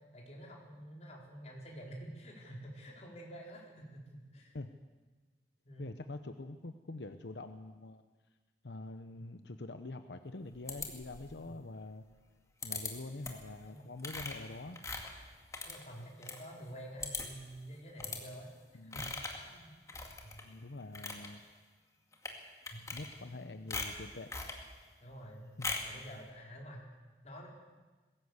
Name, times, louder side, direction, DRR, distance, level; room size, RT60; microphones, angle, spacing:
voice 1, 0.1-4.5 5.6-5.9 9.2-9.3 11.5-11.6 13.7-14.0 15.6-18.5 18.8-19.1 19.4-19.7 20.2-20.4 22.7-22.8 23.2-23.7 25.0-26.8 27.2-27.5, equal, 40° left, -2 dB, 4.6 m, -49 dB
voice 2, 5.8-8.0 8.6-12.0 12.6-14.8 18.7-19.1 20.4-21.4 22.9-24.3 25.6-25.7, left 2 dB, 85° left, 8 dB, 0.9 m, -45 dB
sound 1, 10.7-11.4 12.6-12.9 13.2-13.5 14.0-16.4 16.7-16.8 17.0-17.5 18.0-18.2 18.9-19.5 19.9-20.4 20.8-21.3 22.1-22.4 22.7-23.4 23.7-24.6 25.6-26.0, left 3 dB, 20° left, 2.1 m, -40 dB
20.5 x 17.0 x 8.2 m, 1.3 s
head